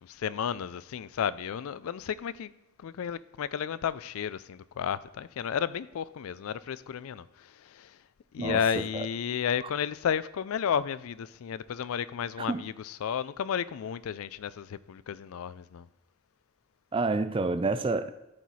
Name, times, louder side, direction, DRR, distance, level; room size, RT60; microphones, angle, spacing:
voice 1, 0.0-2.5 2.8-8.0 8.3-15.9, left 8 dB, 75° left, 0.3 m, -32 dB
voice 2, 16.9-18.1, right 3 dB, 25° right, 0.3 m, -28 dB
13.0 x 4.7 x 4.2 m
head